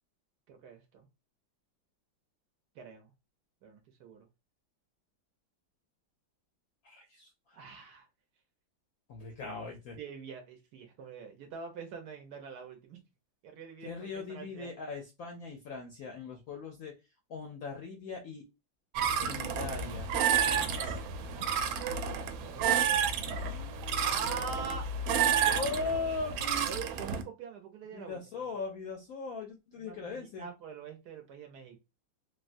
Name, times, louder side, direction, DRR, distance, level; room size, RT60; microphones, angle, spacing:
voice 1, 0.5-1.1 2.7-3.1 3.6-4.3 7.5-8.1 10.0-13.0 13.4-14.7 20.4-21.0 21.9-23.0 24.0-24.9 26.7-28.5 29.8-31.8, right 5 dB, 65° right, 1.1 m, -44 dB
voice 2, 6.8-7.6 9.1-10.0 13.8-16.9 17.3-18.4 19.2-20.1 20.4-21.0 21.3-21.5 23.3-24.6 25.4-26.7 27.9-30.5, left 4 dB, 70° left, 0.8 m, -40 dB
sound 1, 19.0-27.2, right 7 dB, 85° right, 1.3 m, -30 dB
3.6 x 2.2 x 2.5 m
omnidirectional pair, 2.1 m